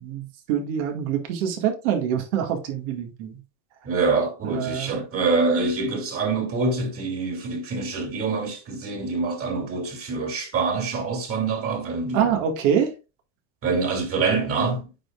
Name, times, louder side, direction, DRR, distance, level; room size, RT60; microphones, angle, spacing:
voice 1, 0.0-3.4 4.4-5.0 12.1-12.9, right 8 dB, 75° right, 2.0 m, -25 dB
voice 2, 3.8-12.4 13.6-14.9, right 4 dB, 35° right, 2.8 m, -25 dB
8.7 x 4.9 x 2.5 m
supercardioid pair, 115°, 36 cm